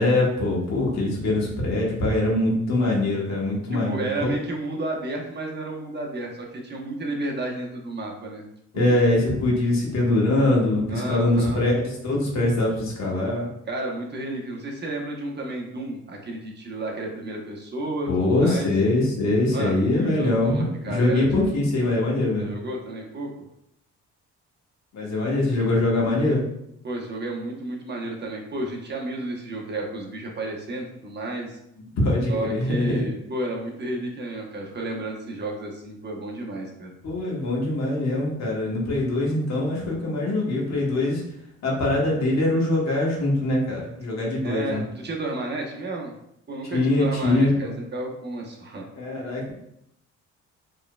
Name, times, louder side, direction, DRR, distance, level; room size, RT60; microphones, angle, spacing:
voice 1, 0.0-4.3 8.7-13.5 18.1-22.5 24.9-26.4 31.9-33.0 37.0-41.2 41.6-44.8 46.7-47.7 49.0-49.5, left 2 dB, 60° left, -3 dB, 1.5 m, -23 dB
voice 2, 3.7-8.4 8.7-8.9 10.9-11.6 13.7-18.7 19.5-21.2 22.4-23.3 26.8-31.6 32.3-36.9 44.4-46.1 46.5-48.8, right 2 dB, 35° right, -1 dB, 1.0 m, -32 dB
4.8 x 3.2 x 2.3 m, 0.76 s
cardioid pair, 90°, 30 cm